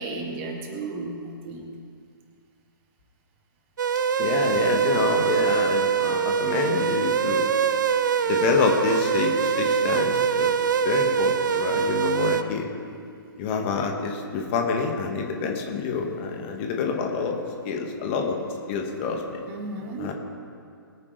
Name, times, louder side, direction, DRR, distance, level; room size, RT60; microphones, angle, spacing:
voice 1, 0.0-1.7 19.5-20.1, right 2 dB, 30° right, 2 dB, 1.9 m, -34 dB
sound 1, 3.8-12.4, right 7 dB, 55° right, 0.7 m, -23 dB
voice 2, 4.2-7.5 8.3-10.5 10.8-12.7 13.4-17.4 17.7-18.4 18.7-19.2 20.0-20.1, left 5 dB, 30° left, 2 dB, 1.8 m, -27 dB
21.5 x 9.4 x 3.4 m, 2.3 s
figure-of-eight pair, 125°, 12 cm